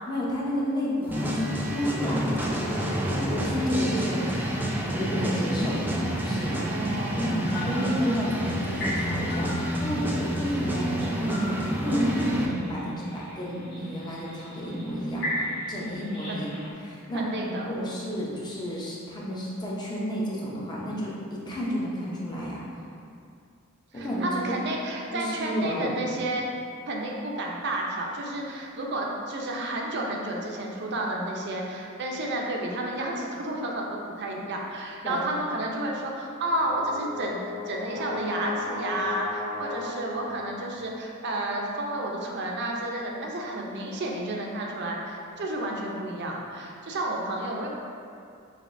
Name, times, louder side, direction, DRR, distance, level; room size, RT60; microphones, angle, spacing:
voice 1, 0.1-4.6 4.9-5.8 6.2-6.6 7.2-15.4 15.7-16.5 16.8-17.2 17.8-22.6 23.9-24.4 25.1-26.2 35.0-35.3, equal, 20° left, -6 dB, 0.7 m, -31 dB
sound 1, 1.1-12.5, equal, 10° right, 0.4 m, -28 dB
voice 2, 6.5-7.4 16.3-16.4 17.1-17.7 23.9-26.5 26.9-37.4 37.7-47.7, right 1 dB, 55° right, -1 dB, 0.6 m, -31 dB
sound 2, 7.3-16.7, left 1 dB, 55° left, 1.4 m, -38 dB
Brass instrument, 36.5-40.7, left 3 dB, 75° left, 1.1 m, -36 dB
5.8 x 2.7 x 2.6 m, 2.4 s
head